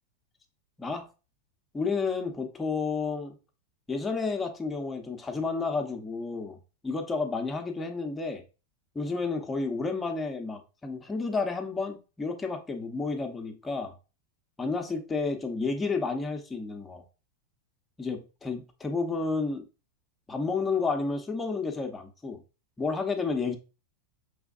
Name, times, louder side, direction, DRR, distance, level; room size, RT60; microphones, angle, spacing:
voice 1, 1.7-3.4 3.9-6.6 6.8-8.4 8.9-13.9 14.6-17.0 18.0-19.7 20.3-22.4 22.8-23.6, left 4 dB, 15° left, 0.7 m, -31 dB
4.9 x 3.5 x 2.4 m
supercardioid pair, 135°, 0 cm